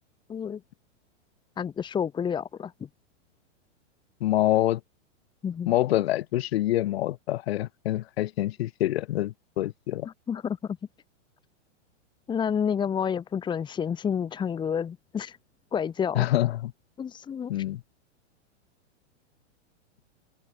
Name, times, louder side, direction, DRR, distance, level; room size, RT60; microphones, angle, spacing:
voice 1, 1.6-2.7 5.4-5.7 10.0-10.6 12.3-15.4 15.7-16.3 17.0-17.5, left 7 dB, 10° left, 2.5 m, -29 dB
voice 2, 4.2-4.8 5.7-10.1 16.1-16.7 17.5-17.8, left 14 dB, 55° left, 5.8 m, -26 dB
supercardioid pair, 160°, 37 cm